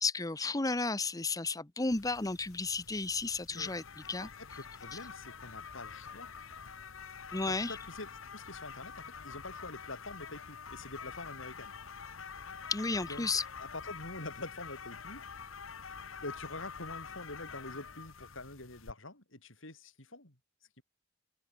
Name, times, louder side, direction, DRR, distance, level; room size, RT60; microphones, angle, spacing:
voice 1, 0.0-4.3 7.3-7.8 12.7-13.4, left 3 dB, 15° left, 0.9 m, -33 dB
sound 1, 1.9-18.9, left 6 dB, 90° left, 1.4 m, -47 dB
voice 2, 4.2-6.3 7.5-11.8 13.0-13.3 13.6-15.2 16.2-20.4 20.8-20.9, left 2 dB, 75° left, 7.2 m, -46 dB
head